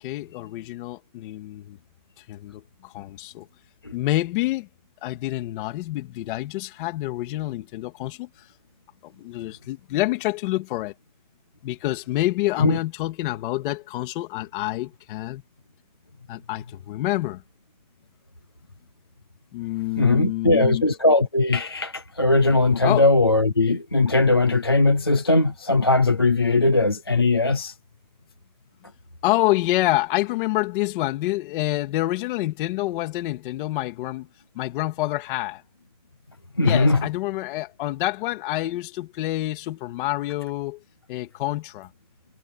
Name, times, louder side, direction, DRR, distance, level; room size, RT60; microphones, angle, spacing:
voice 1, 0.0-1.8 2.3-3.5 3.9-4.7 5.0-8.3 9.0-10.9 11.6-15.4 16.3-17.4 19.5-20.9 22.8-23.1 29.2-34.3 34.5-35.6 36.6-40.8 41.1-41.9, left 17 dB, 40° left, 2.6 m, -27 dB
voice 2, 20.0-27.7 36.6-37.1, left 2 dB, 20° left, 0.3 m, -19 dB
supercardioid pair, 180°, 41 cm